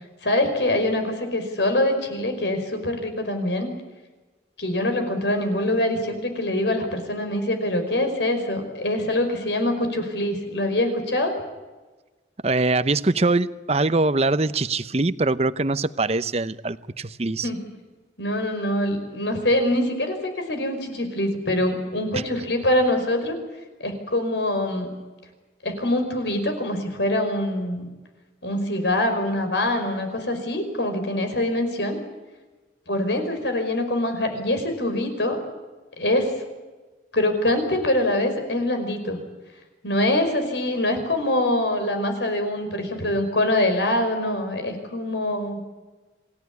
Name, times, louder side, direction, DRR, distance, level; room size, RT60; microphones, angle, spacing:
voice 1, 0.2-3.7 4.6-11.3 17.4-17.6 18.2-23.3 23.8-24.9 25.6-27.9 28.4-32.0 32.9-35.4 36.0-36.3 37.1-39.2 39.8-45.6, left 1 dB, 85° left, 6 dB, 5.3 m, -24 dB
voice 2, 12.4-17.5 22.1-22.2, right 2 dB, 35° right, 14 dB, 0.8 m, -23 dB
27.5 x 16.5 x 9.7 m, 1.2 s
head